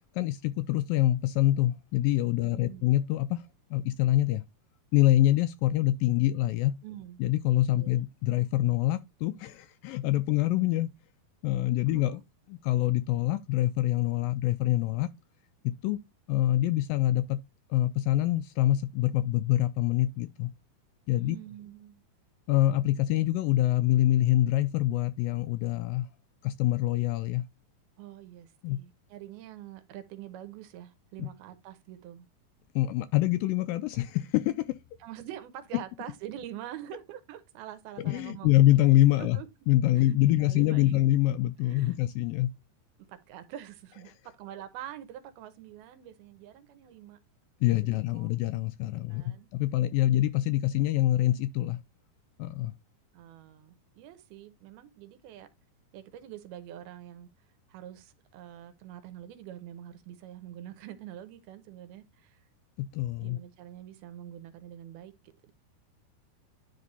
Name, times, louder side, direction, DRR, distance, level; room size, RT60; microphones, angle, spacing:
voice 1, 0.2-3.4 3.7-4.4 4.9-6.7 7.2-10.9 11.4-12.2 12.5-15.1 15.6-16.0 16.3-17.4 17.7-20.5 21.1-21.4 22.5-26.1 26.4-27.5 28.6-28.8 31.2-31.3 32.8-34.7 38.0-39.4 39.7-42.5 47.6-51.8 52.4-52.7 62.8-63.4, left 15 dB, 80° left, 2.1 m, -25 dB
voice 2, 2.4-3.0 6.8-7.2 7.8-8.0 11.9-12.2 21.2-22.0 28.0-32.3 35.0-38.6 39.2-39.5 39.9-41.0 41.6-42.0 43.0-47.2 48.1-48.3 49.1-49.5 53.1-55.5 55.9-57.3 57.7-62.4 63.2-65.5, right 12 dB, 85° right, 2.8 m, -45 dB
10.5 x 3.5 x 4.1 m
omnidirectional pair, 4.4 m